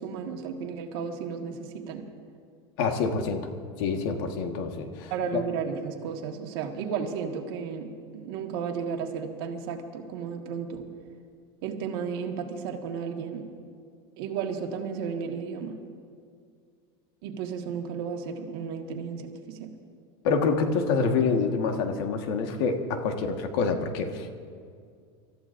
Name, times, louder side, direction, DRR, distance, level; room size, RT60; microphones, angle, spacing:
voice 1, 0.0-2.0 5.1-10.9 11.6-13.4 14.2-15.8 17.2-19.7, right 6 dB, 75° right, 3 dB, 1.7 m, -33 dB
voice 2, 2.8-3.5 3.8-5.4 20.2-24.3, left 5 dB, 70° left, 5 dB, 1.5 m, -27 dB
28.0 x 14.0 x 2.6 m, 2.2 s
supercardioid pair, 145°, 13 cm